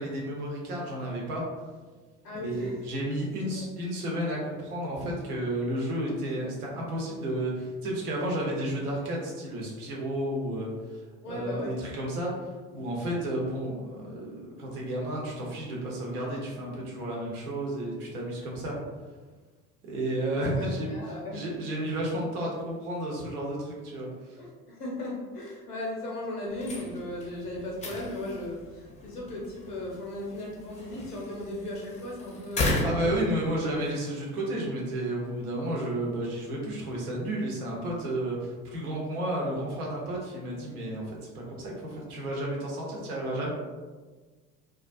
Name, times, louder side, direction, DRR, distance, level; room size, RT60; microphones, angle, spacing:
voice 1, 0.0-1.4 2.4-10.7 11.3-12.3 12.7-18.8 19.9-20.9 21.3-24.1 32.8-43.5, right 1 dB, 75° right, -3 dB, 0.8 m, -32 dB
voice 2, 2.2-2.8 3.4-3.6 11.2-11.8 20.3-21.5 24.4-33.2, left 1 dB, 90° left, -3 dB, 0.7 m, -37 dB
sound 1, 26.5-34.0, left 1 dB, 15° left, 0.5 m, -35 dB
2.3 x 2.1 x 2.5 m, 1.3 s
figure-of-eight pair, 60°, 45 cm